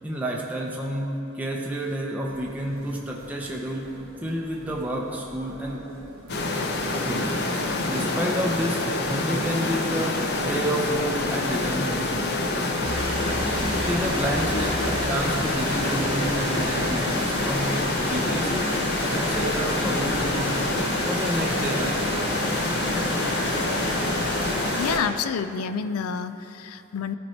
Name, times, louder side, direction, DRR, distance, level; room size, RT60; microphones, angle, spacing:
voice 1, 0.0-3.9 4.2-5.8 7.0-12.3 13.6-18.7 19.1-20.6 21.1-22.1, equal, 5° right, -2 dB, 0.5 m, -30 dB
sound 1, 2.3-16.9, right 1 dB, 70° right, 0.9 m, -46 dB
sound 2, 6.3-25.0, left 2 dB, 50° left, 0.7 m, -26 dB
sound 3, 12.8-25.0, right 1 dB, 25° right, 1.0 m, -31 dB
voice 2, 24.7-27.2, left 6 dB, 90° left, 12 dB, 0.4 m, -28 dB
13.0 x 4.5 x 4.3 m, 2.8 s
head